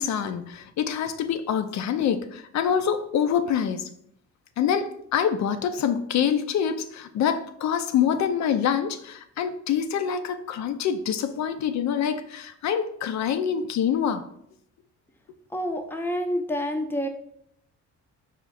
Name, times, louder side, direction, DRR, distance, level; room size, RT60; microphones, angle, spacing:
voice 1, 0.0-3.9 4.6-14.3, left 8 dB, 65° left, 0.5 m, -26 dB
voice 2, 15.5-17.1, equal, 5° left, 0.6 m, -28 dB
5.0 x 2.4 x 4.1 m
cardioid pair, 90°, 30 cm